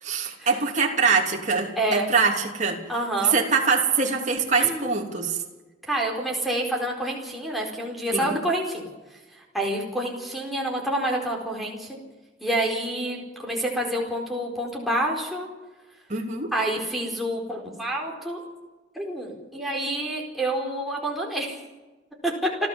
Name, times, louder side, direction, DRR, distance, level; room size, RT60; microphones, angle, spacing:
voice 1, 0.0-2.8 3.2-5.4 8.1-8.4 16.1-16.5, right 5 dB, 40° right, 0 dB, 3.2 m, -23 dB
voice 2, 1.8-2.1 2.9-3.3 4.6-4.9 5.8-8.9 9.3-12.0 12.4-15.5 16.5-18.4 18.9-21.6 22.2-22.5, right 1 dB, ahead, -2 dB, 4.4 m, -28 dB
30.0 x 12.0 x 7.3 m, 1.2 s
head